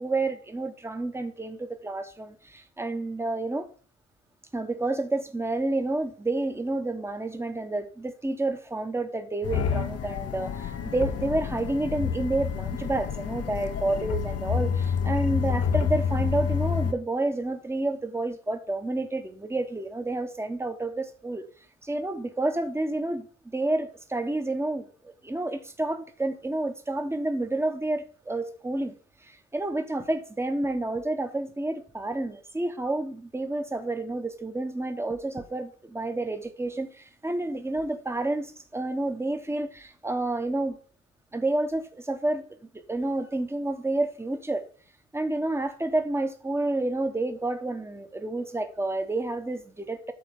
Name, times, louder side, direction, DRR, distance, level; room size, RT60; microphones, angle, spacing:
voice 1, 0.0-3.7 4.5-21.4 21.8-28.9 29.2-40.8 41.3-44.7 45.1-50.1, right 2 dB, 10° right, 1.1 m, -29 dB
sound 1, 9.4-16.9, left 7 dB, 55° left, 0.9 m, -28 dB
8.8 x 3.3 x 6.5 m
cardioid pair, 90°, 30 cm